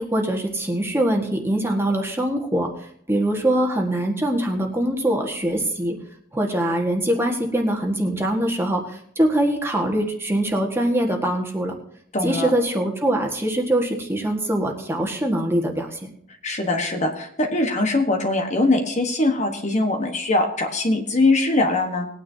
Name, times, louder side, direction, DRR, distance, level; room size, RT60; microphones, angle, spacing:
voice 1, 0.0-2.7 3.1-6.0 6.3-11.7 12.2-16.1, right 1 dB, 10° right, 1 dB, 1.6 m, -23 dB
voice 2, 12.1-12.5 16.4-22.1, left 2 dB, 35° left, 4 dB, 1.3 m, -22 dB
20.0 x 9.6 x 2.8 m, 0.68 s
head